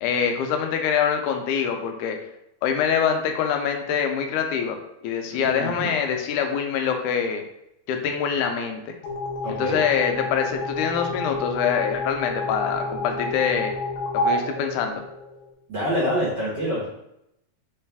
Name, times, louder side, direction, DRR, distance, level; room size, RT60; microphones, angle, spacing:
voice 1, 0.0-2.2 2.6-4.8 5.0-7.4 7.9-8.9 9.5-13.7 14.2-15.0, left 7 dB, 85° left, 4 dB, 2.0 m, -24 dB
voice 2, 5.3-5.9 9.4-9.8 15.7-16.9, equal, 60° right, -7 dB, 1.1 m, -26 dB
sound 1, 9.0-15.5, left 1 dB, 65° left, 1.7 m, -29 dB
4.6 x 3.2 x 3.4 m, 0.82 s
omnidirectional pair, 3.5 m